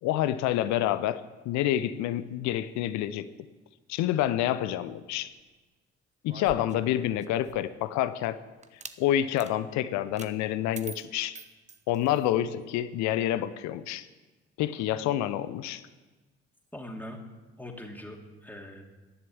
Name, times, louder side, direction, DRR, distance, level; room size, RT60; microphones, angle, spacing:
voice 1, 0.0-3.3 3.9-5.3 6.2-8.4 9.0-11.4 11.9-14.1 14.6-15.8, left 12 dB, 55° left, 14 dB, 0.7 m, -28 dB
sound 1, 6.3-7.8 8.6-9.0 9.4-9.5 10.2-10.3 10.7-12.3, right 4 dB, 20° right, 1.0 m, -45 dB
voice 2, 16.7-17.2 17.6-18.9, left 1 dB, 5° left, 1 dB, 2.9 m, -42 dB
14.5 x 11.0 x 7.1 m, 1.2 s
figure-of-eight pair, 45°, 35 cm